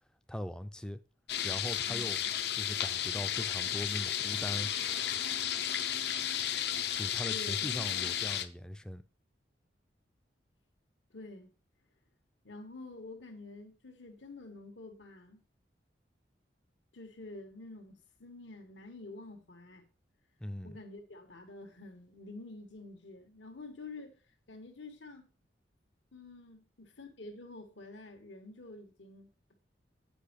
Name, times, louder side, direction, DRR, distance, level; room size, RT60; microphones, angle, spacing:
voice 1, 0.3-1.0 1.4-2.2 2.5-4.7 7.0-9.0 20.4-20.8, left 1 dB, 5° left, 0.4 m, -40 dB
sound 1, 1.3-8.4, left 10 dB, 60° left, 0.6 m, -33 dB
voice 2, 1.8-2.3 7.2-8.3 11.1-11.5 12.4-15.4 16.9-19.9 20.6-24.2 24.5-25.3 26.1-29.5, left 2 dB, 80° left, 1.4 m, -48 dB
8.5 x 5.3 x 5.0 m
head